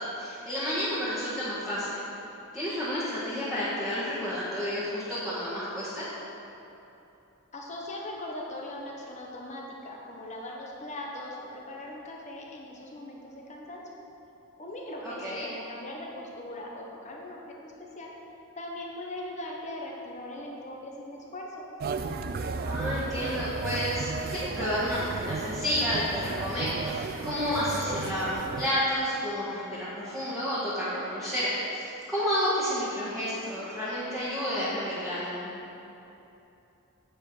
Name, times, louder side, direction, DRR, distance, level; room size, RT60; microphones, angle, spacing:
voice 1, 0.0-2.0 2.5-6.1 15.0-15.4 22.6-35.5, equal, ahead, -14 dB, 1.7 m, -30 dB
voice 2, 7.5-13.9 14.6-18.1 18.6-21.6, left 1 dB, 30° left, -2 dB, 1.0 m, -40 dB
sound 1, 21.8-28.7, right 4 dB, 40° right, 0.3 m, -34 dB
9.0 x 5.1 x 6.2 m, 2.9 s
head